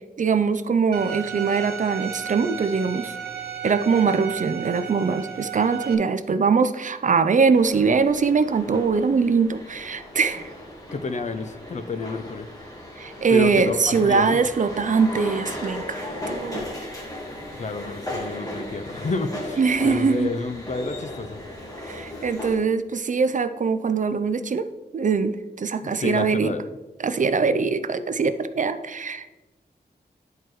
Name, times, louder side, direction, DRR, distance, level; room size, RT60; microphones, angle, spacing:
voice 1, 0.2-3.1 3.6-10.5 13.0-16.6 19.6-20.3 21.8-24.7 24.9-26.5 27.0-29.3, right 5 dB, 50° right, 11 dB, 0.4 m, -22 dB
Bowed string instrument, 0.9-5.9, right 8 dB, 70° right, 0.8 m, -34 dB
sound 1, 7.5-22.6, left 1 dB, 20° left, 1.6 m, -36 dB
voice 2, 10.9-12.5 13.3-14.4 17.5-21.4 25.8-26.7, left 3 dB, 45° left, 10 dB, 0.5 m, -30 dB
10.0 x 4.6 x 3.1 m, 1.2 s
wide cardioid pair, 115°, 17 cm